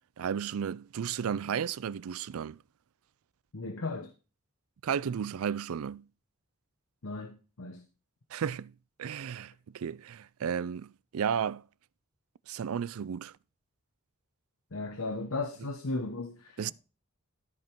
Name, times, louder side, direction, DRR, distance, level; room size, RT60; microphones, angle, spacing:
voice 1, 0.2-2.6 4.8-6.1 8.3-8.7 9.0-11.6 12.5-13.3 16.6-16.7, right 7 dB, 85° right, 0.4 m, -33 dB
voice 2, 3.5-4.1 7.0-7.9 14.7-16.7, left 3 dB, 75° left, 1.0 m, -36 dB
13.0 x 5.2 x 4.5 m
head